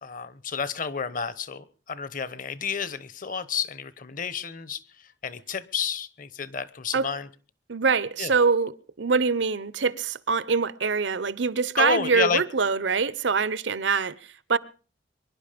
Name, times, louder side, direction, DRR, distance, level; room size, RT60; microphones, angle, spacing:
voice 1, 0.0-4.8 5.2-7.3 8.2-8.3 11.8-12.4, left 6 dB, 45° left, 1.1 m, -30 dB
voice 2, 7.7-14.2 14.5-14.6, right 5 dB, 80° right, 0.8 m, -24 dB
23.5 x 11.0 x 5.2 m
head